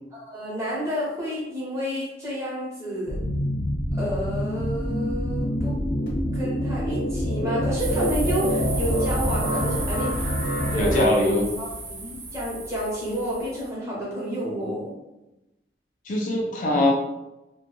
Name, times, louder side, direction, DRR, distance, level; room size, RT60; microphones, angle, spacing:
voice 1, 0.1-3.2 3.9-5.8 6.3-10.3 10.7-14.9, equal, 15° right, -6 dB, 0.8 m, -30 dB
sound 1, 3.1-11.0, equal, 75° left, 0.8 m, -26 dB
suburban park crickets birds summer, 7.8-13.7, right 2 dB, 65° right, 0.7 m, -34 dB
voice 2, 10.8-11.5 16.1-16.9, left 1 dB, 45° left, -2 dB, 0.4 m, -22 dB
2.2 x 2.1 x 3.0 m, 0.97 s
head